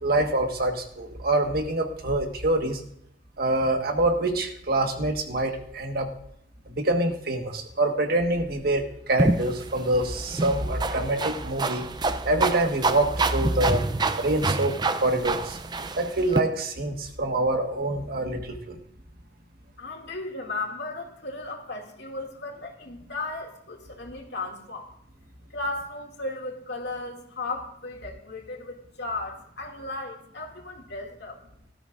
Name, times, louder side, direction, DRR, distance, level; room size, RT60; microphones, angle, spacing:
voice 1, 0.0-2.8 3.4-6.1 6.7-11.8 12.2-13.8 14.2-14.7 15.0-15.6 16.0-18.8, right 2 dB, 55° right, 4 dB, 1.5 m, -25 dB
sound 1, 9.2-16.4, right 3 dB, 25° right, 0.5 m, -28 dB
voice 2, 19.8-24.9 25.5-31.4, left 2 dB, 65° left, 1 dB, 2.4 m, -35 dB
18.0 x 13.5 x 2.6 m, 0.74 s
head